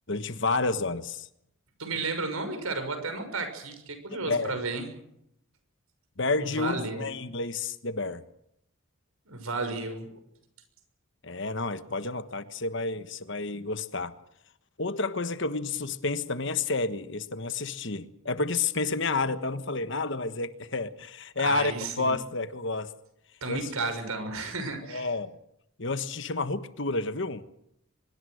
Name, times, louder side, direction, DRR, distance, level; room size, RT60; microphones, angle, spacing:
voice 1, 0.1-1.3 4.3-4.5 6.2-8.2 11.2-14.1 14.8-22.9 23.5-23.9 24.9-25.3 25.8-27.4, left 3 dB, 60° left, 1.4 m, -30 dB
voice 2, 1.8-4.9 6.4-7.1 9.3-10.1 21.4-22.1 23.4-25.1, right 3 dB, 90° right, 6.3 m, -33 dB
24.5 x 22.5 x 6.5 m
head